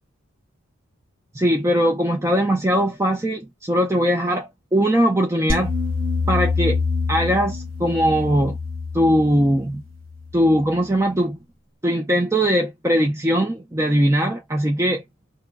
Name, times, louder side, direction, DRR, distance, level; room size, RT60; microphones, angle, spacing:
voice 1, 1.3-5.7 6.3-6.8 7.1-8.6 8.9-9.8 10.3-11.4 11.8-15.0, equal, 15° right, 0.4 m, -20 dB
sound 1, 5.5-10.7, left 4 dB, 70° right, 1.6 m, -26 dB
2.9 x 2.2 x 3.4 m
head